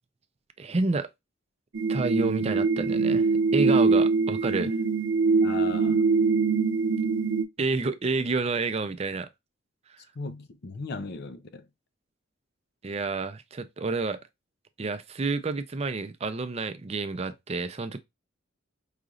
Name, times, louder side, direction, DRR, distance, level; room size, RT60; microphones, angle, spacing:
voice 1, 0.6-1.1 1.9-4.7 7.6-9.3 12.8-14.2 14.8-18.0, right 3 dB, 35° right, 0.5 m, -29 dB
sound 1, 1.7-7.4, right 4 dB, 75° right, 0.6 m, -23 dB
voice 2, 5.4-6.1 10.2-11.7, left 3 dB, 55° left, 0.5 m, -37 dB
4.9 x 3.0 x 2.5 m
head